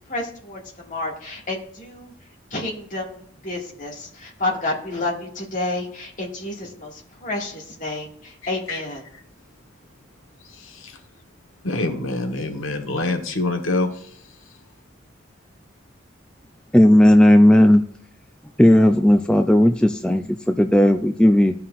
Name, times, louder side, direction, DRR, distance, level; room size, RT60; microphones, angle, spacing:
voice 1, 0.1-2.1 2.5-6.9 7.2-8.1 8.5-9.0, left 2 dB, 40° left, -2 dB, 2.0 m, -29 dB
voice 2, 8.4-8.8 10.6-11.0 11.6-14.0, left 2 dB, 90° left, 4 dB, 1.3 m, -26 dB
voice 3, 16.7-17.8 18.6-21.5, left 1 dB, 5° left, 5 dB, 0.3 m, -14 dB
14.5 x 5.7 x 2.5 m, 0.63 s
head